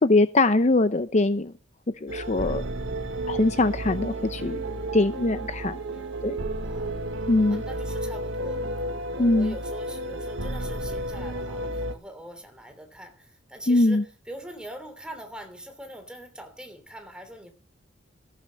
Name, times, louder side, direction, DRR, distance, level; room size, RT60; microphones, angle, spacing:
voice 1, 0.0-1.5 2.0-2.6 3.3-4.6 4.9-5.8 6.2-6.4 7.3-7.6 9.2-9.5 13.7-14.0, left 2 dB, 40° left, 0.7 m, -22 dB
sound 1, 2.1-11.9, right 1 dB, 70° right, 1.6 m, -32 dB
voice 2, 5.8-6.1 6.6-7.0 7.5-8.7 9.1-17.5, right 1 dB, 5° right, 3.1 m, -43 dB
14.5 x 8.4 x 6.4 m
head